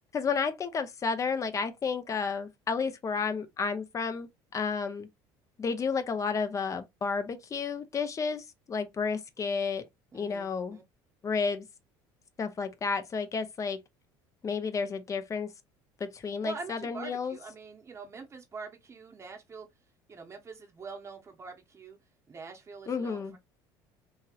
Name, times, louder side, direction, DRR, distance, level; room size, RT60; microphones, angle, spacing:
voice 1, 0.1-5.1 5.6-9.9 10.1-10.8 11.2-11.7 12.4-13.8 14.4-15.5 16.0-17.4 22.9-23.4, left 5 dB, 30° left, 0.6 m, -31 dB
voice 2, 10.1-10.8 16.4-19.7 20.1-22.0 22.3-23.4, right 4 dB, 25° right, 0.8 m, -44 dB
2.9 x 2.8 x 2.3 m
supercardioid pair, 90°, 10 cm